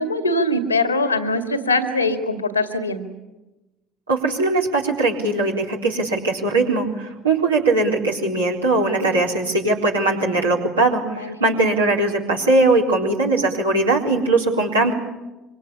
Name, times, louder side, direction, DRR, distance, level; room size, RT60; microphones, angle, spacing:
voice 1, 0.0-3.0 11.1-11.4, left 2 dB, 85° left, 8 dB, 2.2 m, -22 dB
voice 2, 4.1-14.9, right 2 dB, 80° right, -2 dB, 3.8 m, -20 dB
25.5 x 24.5 x 8.6 m, 1.1 s
figure-of-eight pair, 60°, 0 cm